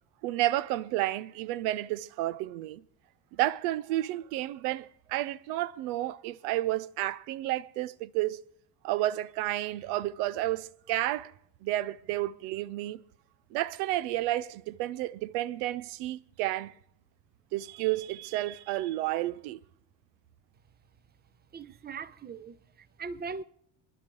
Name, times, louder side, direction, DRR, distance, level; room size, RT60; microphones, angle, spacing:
voice 1, 0.2-2.8 3.3-8.4 8.8-11.3 11.6-13.0 13.5-16.7 17.5-19.6, right 15 dB, 80° right, 0.6 m, -31 dB
voice 2, 21.5-23.4, right 5 dB, 20° right, 0.6 m, -40 dB
27.5 x 11.0 x 3.0 m
supercardioid pair, 70°, 49 cm